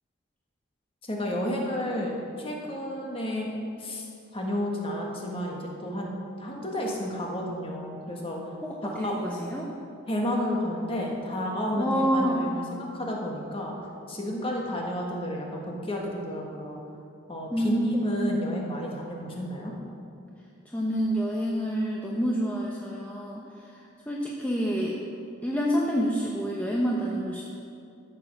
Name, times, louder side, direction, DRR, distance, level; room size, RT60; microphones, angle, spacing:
voice 1, 1.1-4.0 4.3-6.1 6.4-8.4 8.8-9.2 10.1-13.7 14.1-16.8 17.3-19.7, left 1 dB, 25° left, -1 dB, 1.7 m, -31 dB
voice 2, 8.6-9.7 11.8-12.4 17.5-18.4 20.7-25.0 25.4-27.6, equal, 5° left, -3 dB, 0.8 m, -28 dB
13.5 x 7.6 x 6.2 m, 2.5 s
head